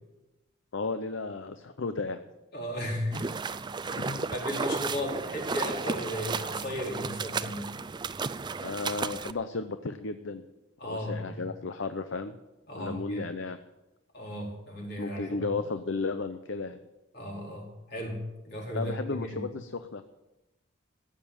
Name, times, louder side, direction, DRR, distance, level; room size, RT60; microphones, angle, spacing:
voice 1, 0.7-2.2 3.9-4.3 8.6-10.4 10.8-12.4 12.8-13.6 15.0-16.8 18.7-20.0, left 3 dB, 70° left, 10 dB, 0.7 m, -34 dB
voice 2, 2.5-3.3 3.8-7.7 10.8-11.4 12.7-13.3 14.1-15.5 17.1-18.2 18.5-19.4, equal, 55° left, -1 dB, 4.3 m, -35 dB
sound 1, 3.1-9.3, right 4 dB, 20° right, 0.4 m, -34 dB
15.0 x 7.6 x 8.7 m, 1.0 s
head